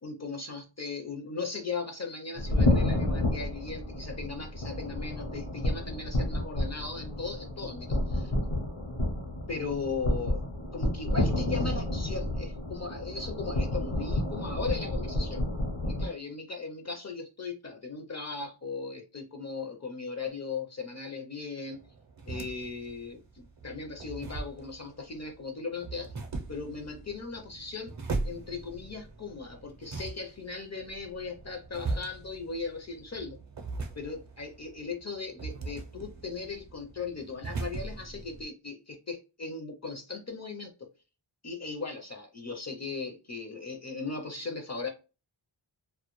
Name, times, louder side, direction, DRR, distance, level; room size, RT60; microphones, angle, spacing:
voice 1, 0.0-8.3 9.5-10.5 10.7-15.5 15.8-21.8 22.3-26.1 26.5-27.9 28.2-33.4 34.0-40.9 41.4-44.9, left 4 dB, 35° left, 0.5 m, -38 dB
sound 1, 2.4-16.1, left 1 dB, 70° left, 0.8 m, -30 dB
sound 2, 21.7-38.4, right 3 dB, 40° right, 0.5 m, -40 dB
2.1 x 2.1 x 2.9 m
wide cardioid pair, 65°, 48 cm